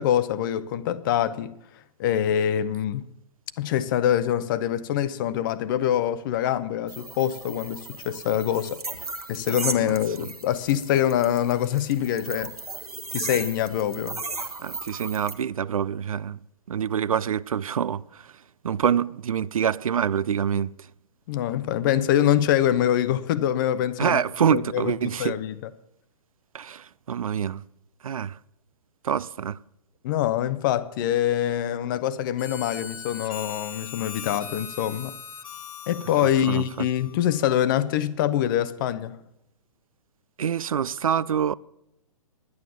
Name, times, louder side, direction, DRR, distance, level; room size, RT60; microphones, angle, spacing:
voice 1, 0.0-1.6 2.0-3.1 3.6-8.8 9.3-12.5 13.1-14.2 21.3-24.2 24.5-24.9 25.2-25.5 30.0-35.1 35.9-39.2, left 11 dB, 35° left, 0.7 m, -24 dB
sound 1, 6.9-15.3, right 3 dB, 85° right, 1.3 m, -36 dB
voice 2, 14.6-16.4 16.7-18.3 18.6-20.7 24.0-25.4 26.5-27.6 28.0-28.4 29.0-29.6 36.2-36.9 40.4-41.5, right 8 dB, 70° right, 0.4 m, -26 dB
Harmonica, 32.4-37.6, left 7 dB, 65° left, 1.0 m, -40 dB
10.5 x 9.5 x 7.1 m
figure-of-eight pair, 120°, 19 cm